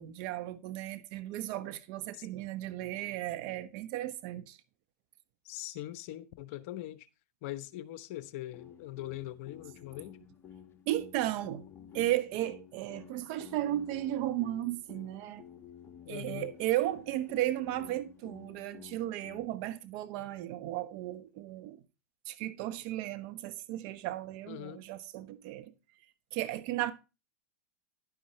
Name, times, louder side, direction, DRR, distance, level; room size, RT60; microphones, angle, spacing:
voice 1, 0.0-4.6 10.9-11.6 11.9-15.4 16.1-21.8 22.3-25.7 26.3-26.9, right 14 dB, 50° right, 1.2 m, -35 dB
voice 2, 5.4-7.1 7.4-10.2 16.0-16.5 24.5-24.8, left 14 dB, 55° left, 1.0 m, -42 dB
sound 1, 8.5-19.5, left 9 dB, 30° left, 1.5 m, -52 dB
10.5 x 9.8 x 3.2 m
hypercardioid pair, 110°, 8 cm